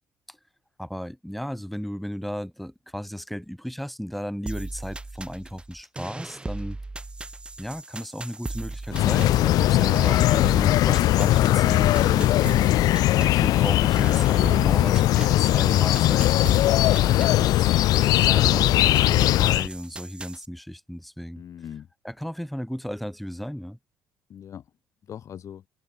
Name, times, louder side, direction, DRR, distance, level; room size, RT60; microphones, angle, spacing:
voice 1, 0.8-6.8 7.6-12.3 13.2-16.3 17.0-17.8 18.2-21.4 22.0-23.8, equal, ahead, 2.4 m, -34 dB
sound 1, 4.5-20.5, right 2 dB, 15° right, 5.4 m, -37 dB
sound 2, 8.9-19.7, left 15 dB, 70° left, 0.9 m, -20 dB
voice 2, 14.7-15.1 21.4-21.9 24.3-24.7 25.0-25.6, left 9 dB, 50° left, 2.8 m, -38 dB
cardioid pair, 100°, 7 cm